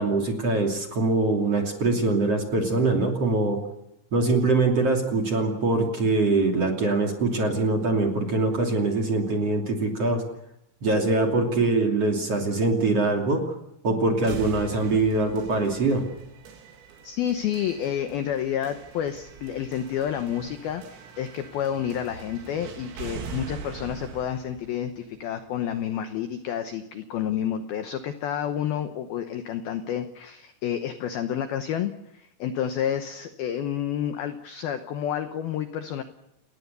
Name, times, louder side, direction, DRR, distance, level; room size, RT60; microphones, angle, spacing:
voice 1, 0.0-3.6 4.1-10.2 10.8-13.4 13.8-16.1, right 3 dB, 35° right, 2 dB, 2.9 m, -23 dB
sound 1, 14.3-26.2, right 5 dB, 80° right, 5.3 m, -43 dB
voice 2, 17.0-36.0, left 9 dB, 85° left, 9 dB, 2.1 m, -30 dB
29.0 x 20.0 x 6.9 m, 0.83 s
omnidirectional pair, 5.9 m